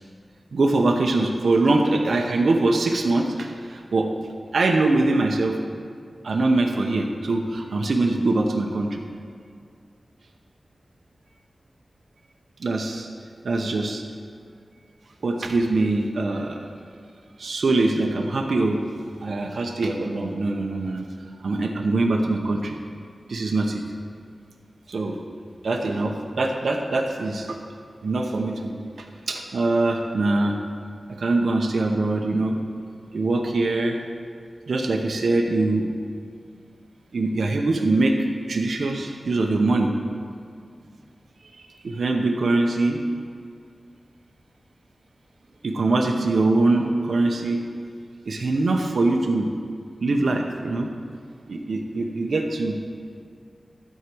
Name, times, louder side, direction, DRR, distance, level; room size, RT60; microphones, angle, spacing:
voice 1, 0.5-4.1 4.5-5.6 6.2-9.0 12.6-13.1 13.4-14.0 15.2-16.7 17.4-18.8 19.2-21.1 21.4-22.7 23.3-23.8 24.9-25.2 25.6-27.6 28.0-30.6 31.2-32.6 33.1-34.0 34.7-35.9 37.1-39.9 41.6-43.0 45.6-47.6 48.3-49.5 50.0-50.9 51.5-52.8, right 2 dB, 80° right, 2 dB, 0.8 m, -23 dB
12.5 x 4.8 x 7.7 m, 2.2 s
wide cardioid pair, 75°, 0 cm